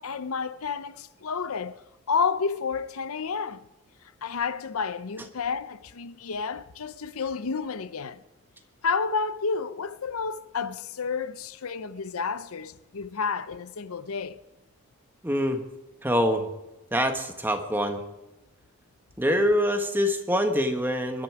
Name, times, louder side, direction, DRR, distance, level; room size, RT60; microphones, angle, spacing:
voice 1, 0.0-1.8 2.1-3.6 4.2-8.2 8.8-14.4, left 5 dB, 80° left, 0.7 m, -30 dB
voice 2, 15.2-15.6 16.0-16.5 16.9-18.0 19.2-21.2, equal, 10° right, 1.4 m, -25 dB
22.0 x 11.5 x 4.8 m
head